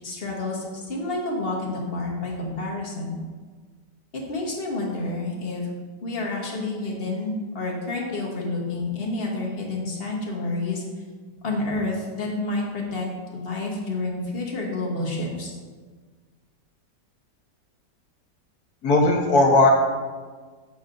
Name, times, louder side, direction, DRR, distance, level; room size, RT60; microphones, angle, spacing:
voice 1, 0.0-3.2 4.1-5.6 6.0-10.8 11.4-15.6, left 2 dB, 40° left, -2 dB, 1.2 m, -29 dB
voice 2, 18.8-19.7, left 2 dB, 60° left, 0 dB, 1.4 m, -17 dB
7.1 x 7.1 x 2.5 m, 1.5 s
omnidirectional pair, 1.9 m